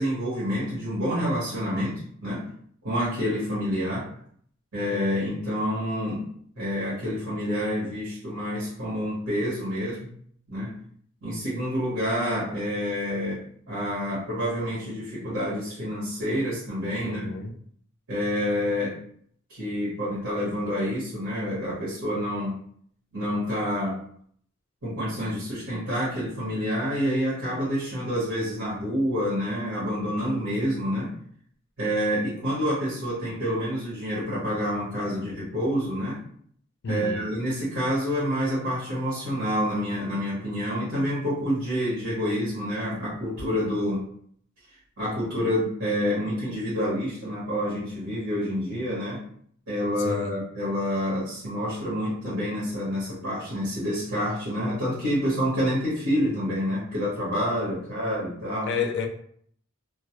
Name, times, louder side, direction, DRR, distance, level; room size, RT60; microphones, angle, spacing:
voice 1, 0.0-2.5 2.8-4.1 4.7-6.3 6.6-10.1 10.5-10.8 11.2-13.4 13.7-17.3 18.1-18.9 19.5-22.6 23.1-24.0 24.8-31.1 31.8-36.2 36.9-44.0 45.0-49.2 49.7-58.7, equal, 80° right, 1.0 m, -28 dB
voice 2, 17.0-17.5 36.8-37.3 50.0-50.4 58.7-59.1, left 4 dB, 55° left, 0.4 m, -30 dB
2.2 x 2.0 x 2.8 m
head